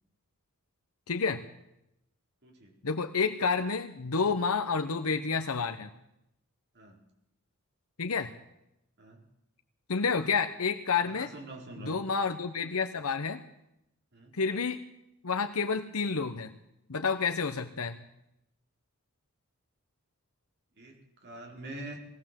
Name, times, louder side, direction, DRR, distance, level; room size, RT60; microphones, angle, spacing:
voice 1, 1.1-1.4 2.8-5.9 8.0-8.3 9.9-11.3 11.8-13.4 14.3-14.8 15.2-16.5 16.9-18.0, left 5 dB, 75° left, 6 dB, 1.0 m, -29 dB
voice 2, 2.4-2.7 6.7-7.0 9.0-9.2 11.0-12.0 14.1-14.4 20.8-22.0, right 1 dB, 50° right, 1 dB, 4.5 m, -45 dB
20.5 x 17.0 x 7.6 m, 0.84 s
head